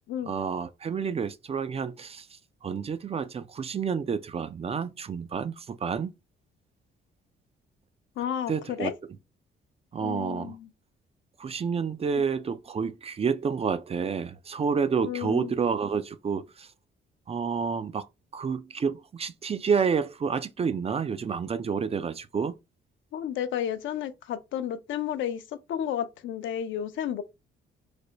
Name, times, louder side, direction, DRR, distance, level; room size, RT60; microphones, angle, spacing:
voice 1, 0.3-2.3 2.6-6.1 8.5-8.9 9.9-10.5 11.4-16.7 17.3-18.1 18.3-22.5, right 6 dB, 30° right, 0.4 m, -29 dB
voice 2, 8.2-8.9 10.0-10.7 15.0-15.5 23.1-25.4 25.7-27.2, left 10 dB, 75° left, 0.6 m, -32 dB
3.3 x 2.1 x 3.8 m
cardioid pair, 90°, 20 cm